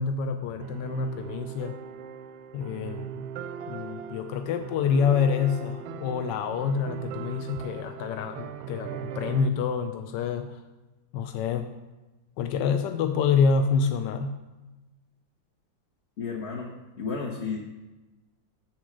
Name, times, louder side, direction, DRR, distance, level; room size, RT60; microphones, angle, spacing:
voice 1, 0.0-1.8 2.5-3.2 3.7-10.6 11.1-11.7 12.4-14.4, left 6 dB, 75° left, 7 dB, 1.1 m, -27 dB
sound 1, 0.6-9.5, right 8 dB, 90° right, 1.4 m, -39 dB
voice 2, 16.2-16.7 17.0-17.6, left 5 dB, 45° left, -1 dB, 1.1 m, -32 dB
7.5 x 7.2 x 6.2 m, 1.1 s
omnidirectional pair, 2.1 m